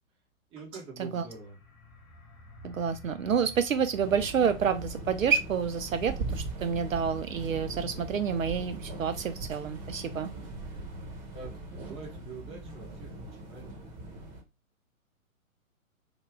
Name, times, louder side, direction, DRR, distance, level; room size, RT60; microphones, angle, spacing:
voice 1, 0.5-1.6 11.3-13.8, right 3 dB, 15° right, -1 dB, 0.8 m, -45 dB
sound 1, 1.3-12.8, left 2 dB, 15° left, 0.8 m, -53 dB
voice 2, 2.6-10.3, right 7 dB, 65° right, 9 dB, 0.5 m, -29 dB
sound 2, 4.0-14.4, right 2 dB, 30° right, 1.1 m, -40 dB
3.5 x 2.3 x 3.5 m, 0.26 s
figure-of-eight pair, 120°, 42 cm